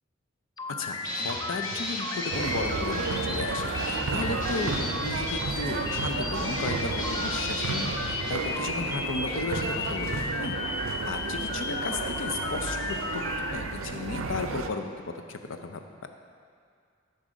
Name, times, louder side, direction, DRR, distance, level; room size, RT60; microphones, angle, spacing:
sound 1, 0.6-13.5, left 3 dB, 20° left, 0.3 m, -34 dB
voice 1, 0.8-10.6 11.1-13.2 13.5-15.8, left 3 dB, 75° left, 6 dB, 0.5 m, -34 dB
Drum kit, 1.0-8.3, left 1 dB, 40° left, 1.3 m, -37 dB
sound 2, 2.3-14.7, right 4 dB, 85° right, 0.5 m, -33 dB
7.6 x 4.0 x 6.2 m, 2.3 s
head